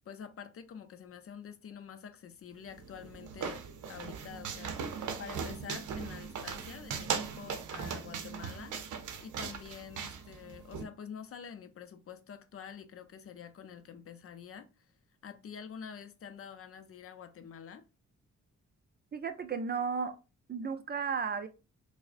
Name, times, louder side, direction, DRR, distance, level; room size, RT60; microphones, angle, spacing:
voice 1, 0.1-3.6 3.9-8.8 9.2-14.9 15.2-17.8, left 7 dB, 50° left, 0.5 m, -47 dB
sound 1, 2.7-10.8, right 6 dB, 85° right, 0.6 m, -39 dB
voice 2, 19.1-20.2 20.5-21.5, right 6 dB, 35° right, 0.4 m, -34 dB
4.7 x 2.1 x 2.5 m
cardioid pair, 100°, 30 cm